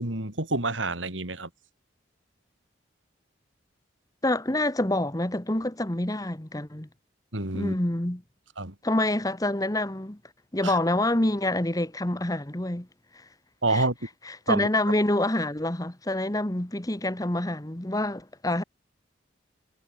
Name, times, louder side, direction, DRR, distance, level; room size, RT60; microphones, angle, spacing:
voice 1, 0.0-1.5 7.3-7.8 8.6-8.7 10.6-10.8 13.6-13.9 14.5-14.7, right 2 dB, 85° right, 4.4 m, -27 dB
voice 2, 4.2-6.9 7.5-8.2 8.8-10.2 10.5-12.9 13.7-13.8 14.3-18.6, left 1 dB, 20° left, 1.3 m, -27 dB
head